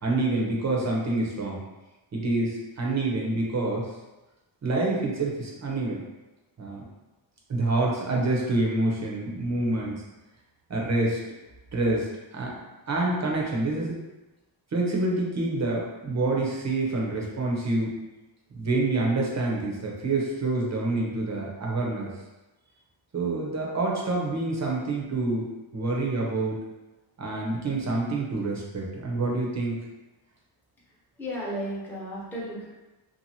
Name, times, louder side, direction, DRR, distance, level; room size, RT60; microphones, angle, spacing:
voice 1, 0.0-1.6 2.1-3.9 4.6-6.0 6.6-6.8 7.5-10.0 10.7-11.2 11.7-13.9 14.7-17.9 18.5-22.1 23.1-25.4 25.7-26.6 27.2-29.8, right 2 dB, 35° right, -2 dB, 0.7 m, -27 dB
voice 2, 30.9-32.6, equal, 5° left, -7 dB, 0.7 m, -34 dB
2.7 x 2.5 x 2.8 m, 1.1 s
wide cardioid pair, 115°, 46 cm